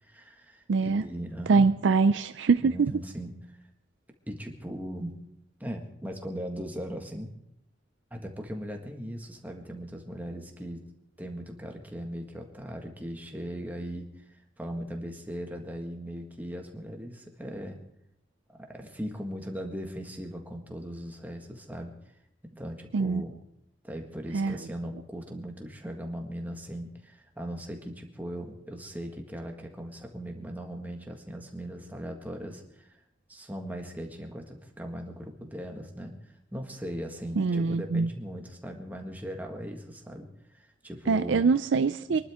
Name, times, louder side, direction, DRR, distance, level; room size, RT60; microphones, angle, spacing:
voice 1, 0.0-1.7 2.6-3.6 4.3-5.2 5.6-7.3 8.1-10.8 11.2-17.8 18.5-21.9 22.4-23.3 23.8-33.0 33.3-36.1 36.5-40.3 40.5-41.5 42.1-42.2, equal, 10° right, 2 dB, 1.6 m, -39 dB
voice 2, 0.7-1.0 1.5-2.9 22.9-23.2 24.3-24.6 37.4-38.1 41.1-42.2, right 4 dB, 65° right, 11 dB, 0.4 m, -23 dB
24.5 x 12.0 x 3.6 m, 0.78 s
head